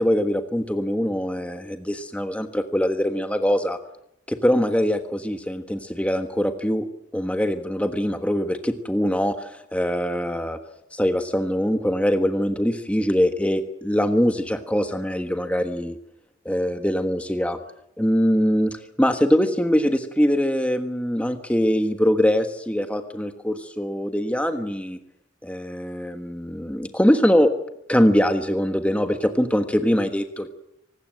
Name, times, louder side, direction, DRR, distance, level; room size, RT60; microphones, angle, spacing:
voice 1, 0.0-3.8 4.3-6.8 7.1-10.6 10.9-16.0 16.4-17.6 18.0-25.0 25.4-27.5 27.9-30.5, equal, 5° left, 7 dB, 1.3 m, -22 dB
25.0 x 20.0 x 7.7 m, 0.81 s
head